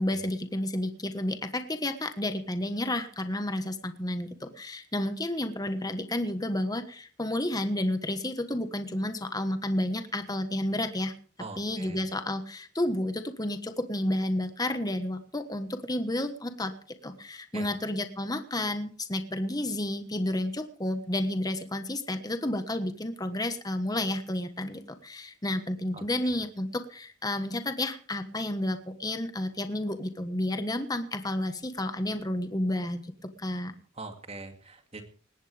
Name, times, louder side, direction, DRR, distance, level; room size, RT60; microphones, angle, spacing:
voice 1, 0.0-11.1 11.6-16.7 17.0-33.0 33.4-33.7, left 1 dB, 20° left, 8 dB, 1.4 m, -31 dB
voice 2, 11.4-12.0 17.5-17.7 25.9-26.3 34.0-35.0, right 3 dB, 35° right, 6 dB, 2.4 m, -43 dB
19.5 x 17.0 x 3.4 m, 0.40 s
head